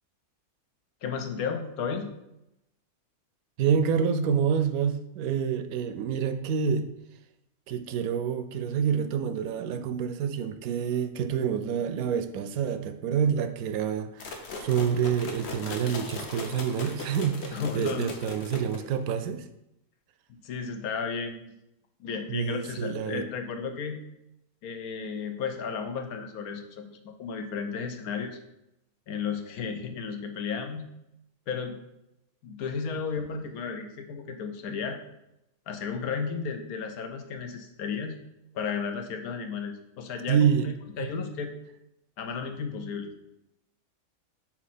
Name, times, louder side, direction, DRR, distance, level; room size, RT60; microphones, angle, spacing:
voice 1, 1.0-2.1 17.5-18.1 20.4-21.5 22.0-24.0 24.6-28.4 29.1-30.9 31.5-31.8 32.4-35.0 35.7-38.2 38.5-40.5 41.0-41.5 42.2-43.1, left 5 dB, 90° left, 5 dB, 1.3 m, -33 dB
voice 2, 3.6-6.9 7.7-19.4 22.3-23.3 32.8-32.9 34.7-34.8 40.3-40.7 41.0-41.1, right 7 dB, 90° right, 9 dB, 1.1 m, -27 dB
sound 1, 14.2-19.1, left 3 dB, 55° left, 1.0 m, -39 dB
5.8 x 4.3 x 4.2 m, 0.85 s
omnidirectional pair, 1.5 m